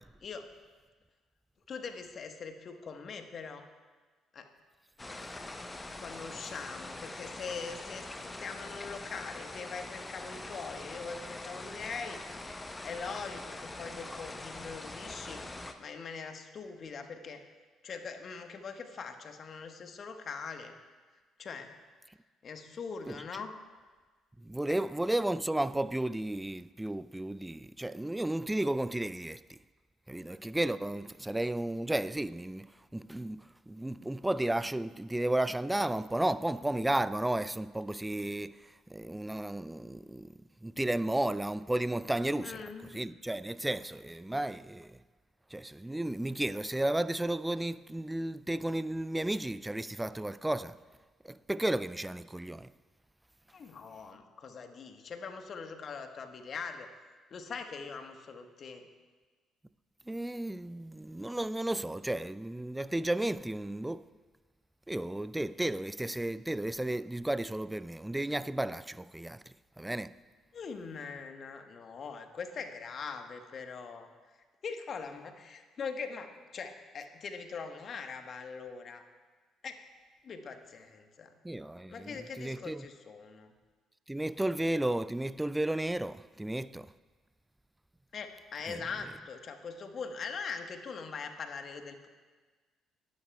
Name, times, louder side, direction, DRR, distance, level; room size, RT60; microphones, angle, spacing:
voice 1, 1.7-3.7 4.3-4.5 5.9-12.2 12.8-15.4 15.8-17.4 17.8-20.7 21.4-21.7 22.4-23.5 42.4-43.1 53.5-56.9 57.3-58.9 70.5-74.1 74.6-79.0 79.6-79.8 80.2-81.3 81.9-83.5 88.1-92.1, left 5 dB, 50° left, 1.2 m, -42 dB
sound 1, 5.0-15.7, left 2 dB, 20° left, 0.9 m, -43 dB
voice 2, 24.4-29.6 30.1-40.3 40.6-42.6 42.9-45.0 45.5-50.8 51.2-52.7 60.1-64.0 64.9-70.2 81.4-82.9 84.1-86.9 88.7-88.8, right 1 dB, 10° right, 0.4 m, -33 dB
21.5 x 11.5 x 2.3 m
figure-of-eight pair, 45°, 0 cm